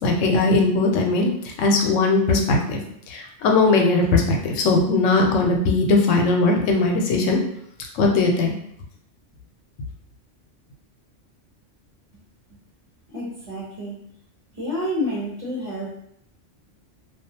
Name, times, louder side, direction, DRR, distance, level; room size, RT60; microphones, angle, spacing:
voice 1, 0.0-1.3 1.6-2.8 3.1-7.4 8.0-8.6, left 3 dB, 85° left, 1 dB, 0.9 m, -19 dB
voice 2, 13.1-14.0 14.5-15.9, left 1 dB, 35° right, -7 dB, 0.8 m, -29 dB
2.3 x 2.3 x 2.7 m, 0.70 s
omnidirectional pair, 1.3 m